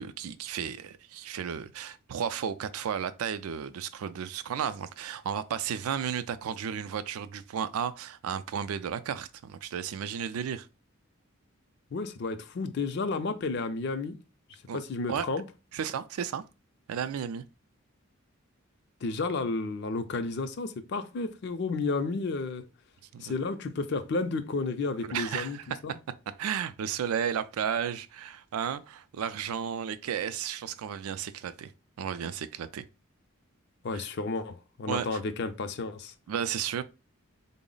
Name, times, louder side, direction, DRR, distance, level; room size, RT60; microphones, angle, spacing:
voice 1, 0.0-10.7 14.7-14.8 15.1-15.3 15.7-16.4 16.9-17.4 23.1-23.3 25.0-26.0 26.3-31.7 32.0-32.8 33.9-34.1 34.9-35.2 36.3-36.8, right 8 dB, 90° right, 0.4 m, -33 dB
voice 2, 11.9-14.2 14.7-15.4 19.0-22.6 23.2-25.6 25.8-26.0 33.8-36.1, left 3 dB, 55° left, 0.4 m, -32 dB
3.9 x 2.0 x 3.7 m
head